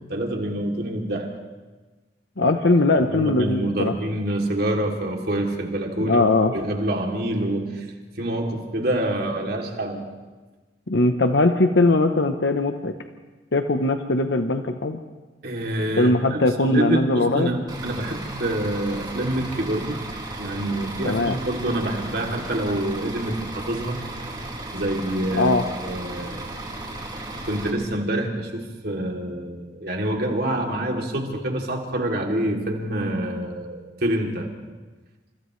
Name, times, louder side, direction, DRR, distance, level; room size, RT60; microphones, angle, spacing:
voice 1, 0.1-1.4 2.4-2.5 2.9-6.2 6.5-7.9 8.2-10.1 15.4-20.0 20.4-24.0 24.7-26.5 27.2-34.5, right 1 dB, 55° right, 1 dB, 3.0 m, -26 dB
voice 2, 2.4-3.9 6.0-6.5 10.9-12.9 13.5-15.0 16.0-17.5 21.0-21.4 25.3-25.6, left 2 dB, 75° left, 6 dB, 1.0 m, -20 dB
Bus / Idling, 17.7-27.7, right 2 dB, 25° right, 3.8 m, -35 dB
29.5 x 28.0 x 3.3 m, 1.3 s
head